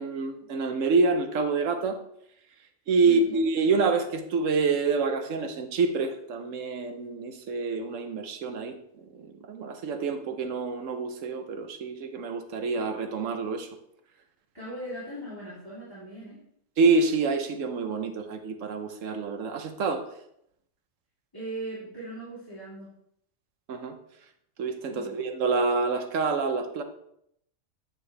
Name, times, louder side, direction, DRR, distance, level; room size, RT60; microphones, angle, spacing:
voice 1, 0.0-2.0 2.9-13.7 16.8-20.1 23.7-24.0 24.6-26.8, right 4 dB, 80° right, 8 dB, 1.2 m, -27 dB
voice 2, 3.0-3.4 14.5-16.4 21.3-22.9 24.9-25.1, right 1 dB, 15° left, -10 dB, 2.8 m, -39 dB
9.6 x 6.0 x 3.3 m, 0.73 s
omnidirectional pair, 1.3 m